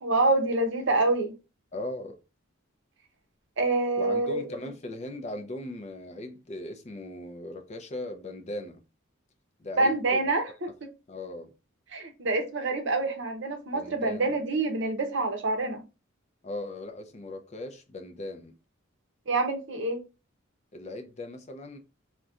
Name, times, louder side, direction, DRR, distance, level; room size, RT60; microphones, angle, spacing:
voice 1, 0.0-1.3 3.6-4.5 9.8-10.9 11.9-15.8 19.3-20.0, right 2 dB, 60° right, 0.7 m, -26 dB
voice 2, 1.7-2.2 4.0-8.8 9.6-10.2 11.1-11.5 13.7-14.3 16.4-18.5 20.7-21.8, left 1 dB, 35° left, 0.4 m, -38 dB
3.9 x 2.2 x 2.4 m
head